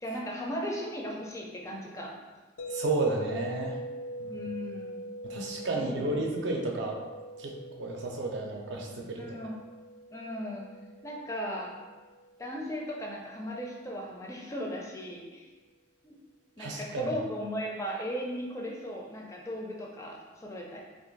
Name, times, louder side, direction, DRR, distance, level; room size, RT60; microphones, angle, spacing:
voice 1, 0.0-2.1 4.3-5.0 5.7-6.3 9.2-9.5 10.1-10.7 11.0-11.7 12.4-15.5 16.0-16.2 16.6-20.8, equal, 15° left, -1 dB, 0.4 m, -37 dB
sound 1, 2.6-12.7, right 1 dB, 85° left, 0.4 m, -43 dB
voice 2, 2.7-3.8 4.2-4.5 5.2-7.0 7.4-9.3 16.6-17.1, right 2 dB, 70° right, 0 dB, 0.5 m, -32 dB
2.5 x 2.4 x 3.8 m, 1.3 s
head